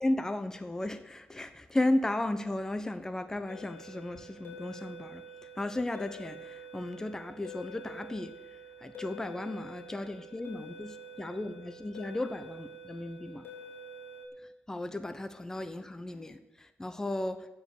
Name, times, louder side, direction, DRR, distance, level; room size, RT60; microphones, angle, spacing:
voice 1, 0.0-5.2 5.6-8.3 8.8-13.4 14.7-17.5, left 1 dB, 15° left, 9 dB, 0.8 m, -34 dB
sound 1, 3.5-14.3, right 1 dB, 65° left, 3.3 m, -48 dB
14.5 x 5.2 x 8.4 m, 0.97 s
wide cardioid pair, 130°, 4 cm